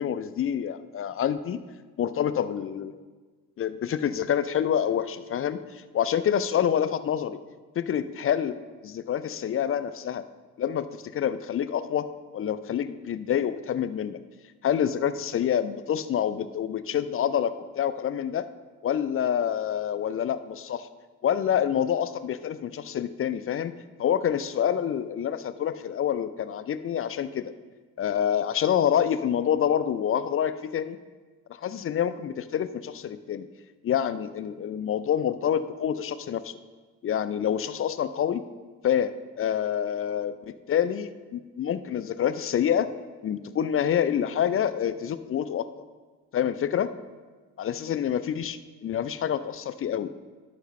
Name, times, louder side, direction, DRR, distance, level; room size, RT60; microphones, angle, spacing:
voice 1, 0.0-1.6 2.0-3.0 3.6-5.6 5.9-7.4 7.8-8.6 8.8-10.2 10.6-12.1 12.3-14.2 14.6-18.5 18.8-20.9 21.2-23.7 24.0-27.5 28.0-31.0 31.6-33.5 33.8-36.6 37.0-38.4 38.8-40.4 40.7-42.9 43.2-45.7 46.3-46.9 47.6-50.1, left 9 dB, 30° left, 13 dB, 0.5 m, -27 dB
11.0 x 7.6 x 3.2 m, 1.4 s
hypercardioid pair, 50°, 46 cm